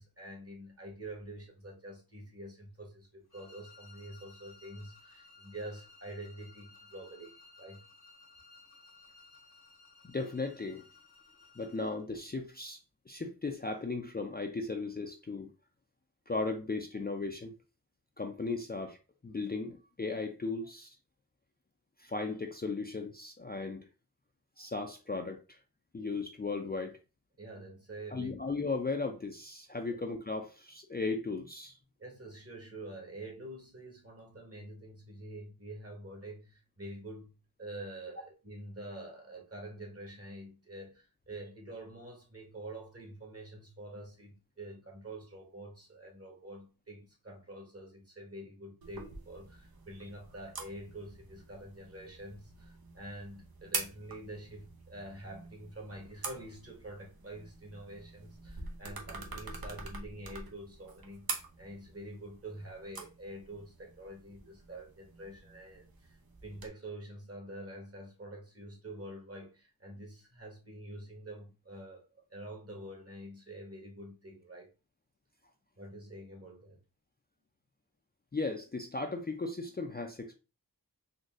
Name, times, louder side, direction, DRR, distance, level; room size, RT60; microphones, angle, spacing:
voice 1, 0.0-7.8 27.4-28.4 32.0-74.7 75.8-76.8, right 1 dB, 40° right, 1.3 m, -47 dB
sound 1, 3.3-12.0, left 3 dB, 80° left, 1.1 m, -58 dB
voice 2, 10.0-10.8 11.6-12.8 13.1-15.5 16.3-17.5 18.2-19.0 19.2-21.0 22.0-23.9 24.6-25.6 25.9-27.0 28.1-31.7 78.3-80.3, left 3 dB, 25° left, 0.4 m, -36 dB
sound 2, 48.8-66.7, right 3 dB, 70° right, 0.7 m, -45 dB
3.9 x 2.6 x 2.4 m
wide cardioid pair, 55°, 37 cm